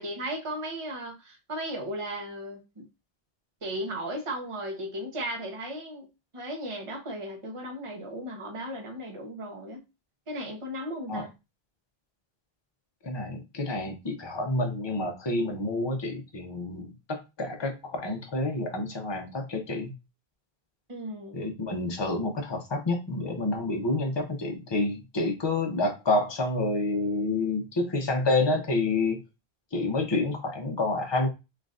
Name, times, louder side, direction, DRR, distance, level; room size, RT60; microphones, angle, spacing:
voice 1, 0.0-2.8 3.6-6.0 6.3-9.8 10.3-11.3 20.9-21.4, right 1 dB, 30° right, 1 dB, 1.0 m, -36 dB
voice 2, 13.0-19.9 21.3-29.2 29.7-31.3, left 2 dB, 30° left, 3 dB, 0.7 m, -28 dB
3.8 x 3.3 x 2.5 m, 0.25 s
omnidirectional pair, 1.0 m